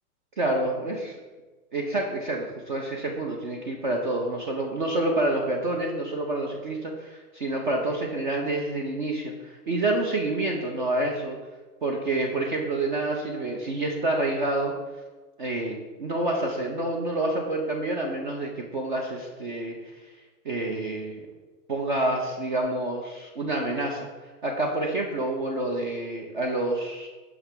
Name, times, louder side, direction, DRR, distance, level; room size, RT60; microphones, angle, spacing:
voice 1, 0.4-1.2 1.7-11.4 11.8-14.7 15.4-20.1 20.4-21.2 21.7-24.1 24.4-27.1, right 2 dB, 35° right, 1 dB, 0.4 m, -28 dB
5.8 x 3.3 x 5.7 m, 1.3 s
hypercardioid pair, 155°, 47 cm